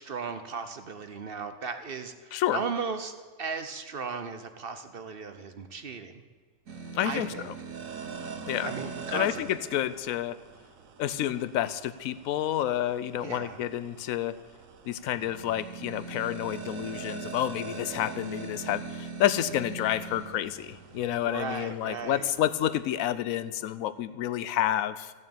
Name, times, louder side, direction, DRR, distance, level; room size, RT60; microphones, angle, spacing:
voice 1, 0.0-3.1 3.4-6.2 7.0-7.5 8.6-9.4 13.1-13.6 21.2-22.3, right 5 dB, 50° right, 9 dB, 0.8 m, -36 dB
sound 1, 6.7-22.8, right 4 dB, 70° right, 1.4 m, -42 dB
voice 2, 6.9-7.5 8.5-8.7 9.1-10.4 11.0-14.3 14.9-25.1, left 12 dB, 75° left, 15 dB, 1.0 m, -29 dB
15.0 x 6.6 x 8.7 m, 1.4 s
omnidirectional pair, 1.5 m